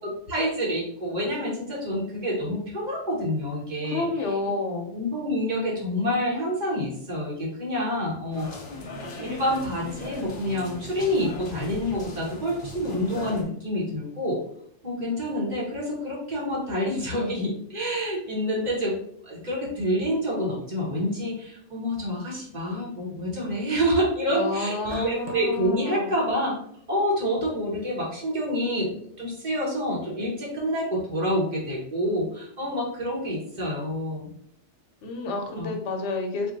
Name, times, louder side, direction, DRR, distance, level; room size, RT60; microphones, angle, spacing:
voice 1, 0.0-4.1 4.9-8.5 9.0-14.4 14.8-19.0 19.2-26.5 26.9-28.9 29.2-34.3 35.6-35.7, equal, 40° right, -3 dB, 1.2 m, -27 dB
voice 2, 3.9-4.9 24.3-26.1 35.0-36.5, left 3 dB, 80° left, 3 dB, 1.0 m, -30 dB
sound 1, 8.3-13.4, left 1 dB, 55° left, 0.8 m, -38 dB
sound 2, 24.8-25.7, right 3 dB, 65° right, 0.4 m, -40 dB
4.5 x 2.4 x 2.5 m, 0.65 s
omnidirectional pair, 1.2 m